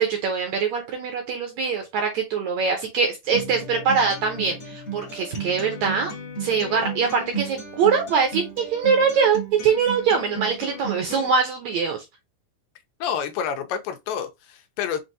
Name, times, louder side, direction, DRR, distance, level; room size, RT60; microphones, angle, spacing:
voice 1, 0.0-6.1 6.4-12.0, right 5 dB, 70° right, 1.7 m, -23 dB
Acoustic guitar, 3.3-11.3, right 4 dB, 60° left, 0.6 m, -34 dB
voice 2, 13.0-15.0, left 8 dB, 85° left, 2.4 m, -28 dB
6.1 x 2.6 x 2.7 m
omnidirectional pair, 4.0 m